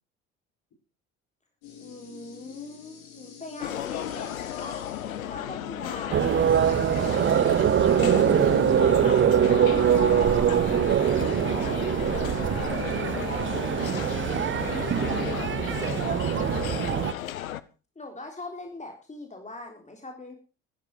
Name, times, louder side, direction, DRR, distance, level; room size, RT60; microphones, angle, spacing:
sound 1, 1.6-13.8, left 8 dB, 70° left, 6.1 m, -40 dB
voice 1, 1.8-4.9 5.3-6.9 18.0-20.3, left 2 dB, 15° left, 3 dB, 3.8 m, -42 dB
sound 2, 3.6-17.6, left 11 dB, 85° left, 0.8 m, -34 dB
sound 3, 6.1-17.1, right 9 dB, 30° right, 0.7 m, -23 dB
voice 2, 9.8-12.2 13.0-13.4 15.0-16.4, left 3 dB, 50° left, 3 dB, 6.8 m, -44 dB
14.0 x 13.5 x 4.8 m, 0.35 s
figure-of-eight pair, 55°, 40 cm